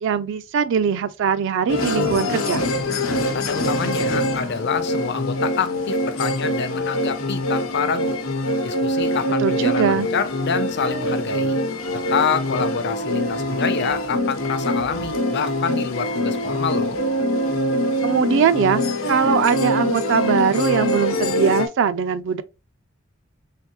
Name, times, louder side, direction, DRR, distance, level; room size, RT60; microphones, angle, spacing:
voice 1, 0.0-2.6 9.4-10.1 18.0-22.4, right 6 dB, 65° right, 0.3 m, -21 dB
sound 1, 1.7-21.7, left 1 dB, 85° left, 0.9 m, -24 dB
voice 2, 2.9-8.2 8.6-11.6 11.9-17.0, left 6 dB, 55° left, 0.6 m, -27 dB
3.4 x 3.3 x 2.9 m
head